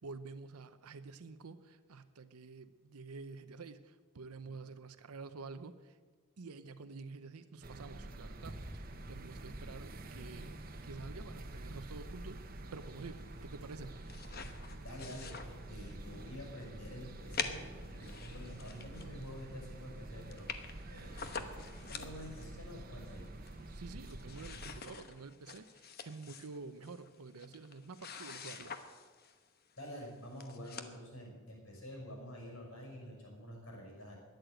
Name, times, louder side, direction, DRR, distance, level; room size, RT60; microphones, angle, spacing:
voice 1, 0.0-6.0 6.4-12.4 12.7-13.9 23.7-28.8, right 4 dB, 85° right, 11 dB, 0.7 m, -49 dB
sound 1, 7.6-24.8, right 1 dB, 40° right, 1.0 m, -47 dB
sound 2, 13.7-16.1 16.5-16.6 17.3-19.4 19.8-19.9 20.0-20.1 20.3-22.5 23.0-23.7 24.0-29.4 30.0-30.1 30.4-31.0, left 5 dB, 45° left, 1.0 m, -46 dB
voice 2, 14.7-20.5 20.9-21.4 21.8-23.3 29.8-34.1, equal, 65° left, 0 dB, 5.8 m, -48 dB
13.0 x 10.5 x 7.9 m, 1.5 s
head